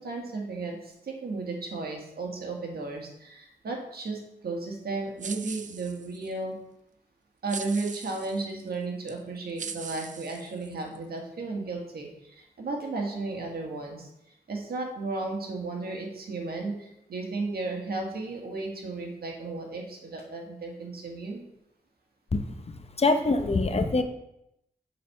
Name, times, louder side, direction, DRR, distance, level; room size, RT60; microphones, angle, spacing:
voice 1, 0.0-6.6 7.4-14.1 14.5-21.4, right 3 dB, 75° right, 1 dB, 1.6 m, -34 dB
sound 1, 5.2-6.3 7.5-8.4 9.1-9.2 9.6-11.0, right 6 dB, 50° right, 0.5 m, -40 dB
voice 2, 22.3-24.0, left 3 dB, 40° left, 7 dB, 0.9 m, -25 dB
7.7 x 4.2 x 5.6 m, 0.82 s
cardioid pair, 70°, 16 cm